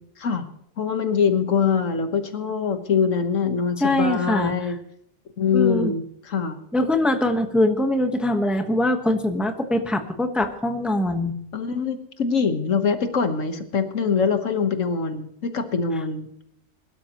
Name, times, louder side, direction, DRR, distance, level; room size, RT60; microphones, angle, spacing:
voice 1, 0.8-4.8 5.4-6.6 11.5-16.3, left 6 dB, 75° left, 8 dB, 1.6 m, -23 dB
voice 2, 3.8-4.7 5.5-5.9 6.7-11.3, left 1 dB, ahead, 6 dB, 1.0 m, -22 dB
22.5 x 12.0 x 3.0 m, 0.74 s
omnidirectional pair, 1.3 m